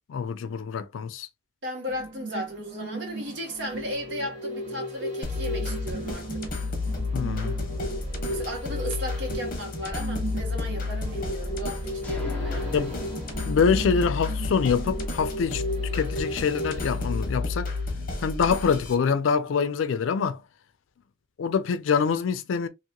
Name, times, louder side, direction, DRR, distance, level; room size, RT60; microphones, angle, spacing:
voice 1, 0.1-1.3 7.1-7.5 12.7-13.0 13.4-15.6 15.9-17.7 18.2-20.4 21.4-22.7, left 6 dB, 85° left, 0.4 m, -25 dB
voice 2, 1.6-6.4 8.3-12.8, equal, 70° right, 1.1 m, -35 dB
sound 1, 1.9-18.1 18.5-18.6, right 1 dB, 40° right, 1.3 m, -36 dB
sound 2, 5.2-18.9, left 3 dB, 45° left, 0.9 m, -31 dB
Revelation Sweep, 12.0-15.7, left 1 dB, 10° left, 0.6 m, -41 dB
2.9 x 2.9 x 2.2 m
head